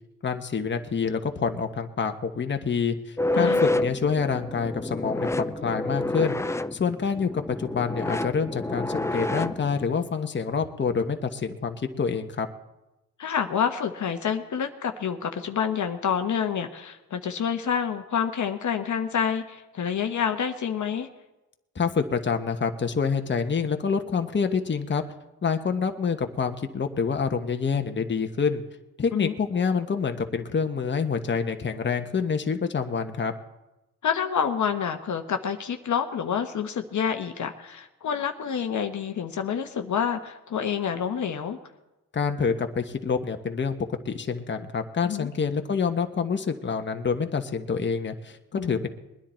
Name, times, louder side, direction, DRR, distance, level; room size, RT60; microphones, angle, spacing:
voice 1, 0.2-12.5 21.7-25.0 25.4-28.6 29.0-33.3 42.1-43.8 44.0-48.9, left 5 dB, 30° left, 6 dB, 1.2 m, -27 dB
sound 1, 3.2-9.9, left 2 dB, 10° left, 0.5 m, -28 dB
voice 2, 13.2-21.1 29.1-29.3 34.0-41.6 45.0-45.3 48.5-48.8, left 7 dB, 55° left, 6 dB, 1.1 m, -28 dB
21.0 x 10.0 x 4.4 m, 0.99 s
cardioid pair, 70°, 35 cm